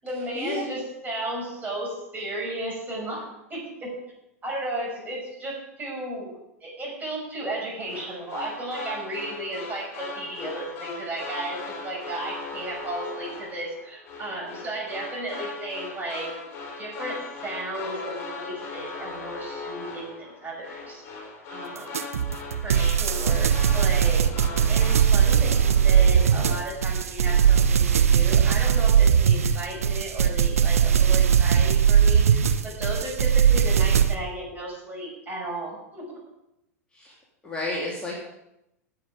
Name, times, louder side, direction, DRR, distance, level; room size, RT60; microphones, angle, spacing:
voice 1, 0.0-3.2 3.5-3.9 4.4-16.3 16.8-21.2 21.5-22.0 22.6-24.2 24.7-36.1, right 1 dB, 20° right, -2 dB, 6.5 m, -34 dB
sound 1, 7.8-26.9 27.2-27.7, left 4 dB, 35° left, 4.0 m, -39 dB
sound 2, 21.9-34.1, right 8 dB, 65° right, 0.9 m, -19 dB
voice 2, 37.4-38.2, left 2 dB, 10° left, -5 dB, 3.0 m, -31 dB
18.5 x 7.4 x 5.2 m, 0.86 s
figure-of-eight pair, 90°, 8 cm